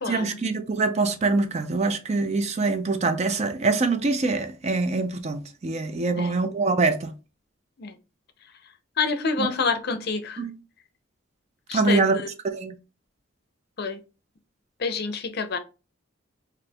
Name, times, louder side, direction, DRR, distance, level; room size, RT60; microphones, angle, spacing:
voice 1, 0.1-7.1 9.4-9.5 10.4-10.5 11.7-12.2 12.4-12.8, right 3 dB, 35° right, 0.4 m, -24 dB
voice 2, 9.0-10.4 11.7-12.3 13.8-14.0 14.8-15.6, left 4 dB, 55° left, 0.5 m, -27 dB
4.3 x 2.5 x 2.2 m
head